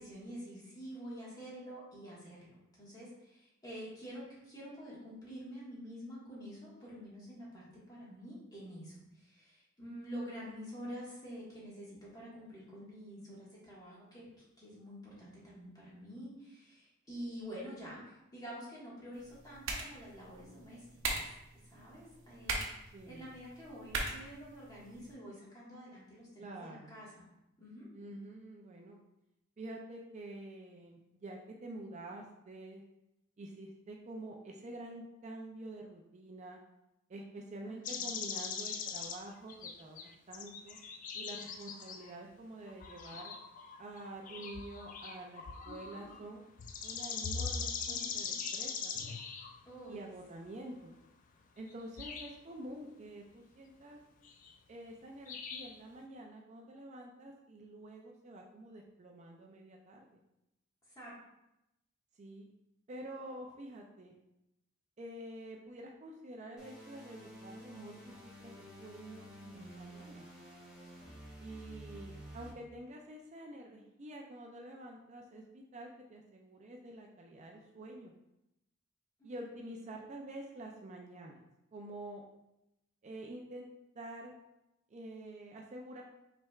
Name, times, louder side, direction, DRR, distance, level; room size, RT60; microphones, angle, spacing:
voice 1, 0.0-14.3 14.6-21.2 21.6-27.3 27.6-27.9 37.6-38.2 49.6-50.0 60.9-61.1 79.2-79.9, equal, 20° left, -7 dB, 1.5 m, -48 dB
sound 1, 19.1-25.1, right 3 dB, 70° right, 0.8 m, -41 dB
voice 2, 22.9-23.3 26.4-27.0 27.9-29.0 29.6-32.8 33.4-36.6 37.1-40.8 41.1-43.3 43.8-46.4 46.8-49.2 49.9-51.0 51.6-54.0 54.7-60.0 62.2-62.5 62.9-64.2 65.0-70.3 71.4-78.1 79.2-81.4 81.7-82.2 83.0-83.7 84.0-84.3 84.9-86.0, right 1 dB, 35° right, 0 dB, 0.4 m, -48 dB
sound 2, 37.8-39.2 39.5-42.1 42.7-46.3 46.6-49.6 51.7-51.8 52.0-52.3 54.2-54.5 55.3-55.8, left 6 dB, 40° left, 0.3 m, -41 dB
sound 3, 66.6-72.5, equal, 5° right, 1.2 m, -51 dB
5.7 x 3.2 x 2.3 m, 0.88 s
head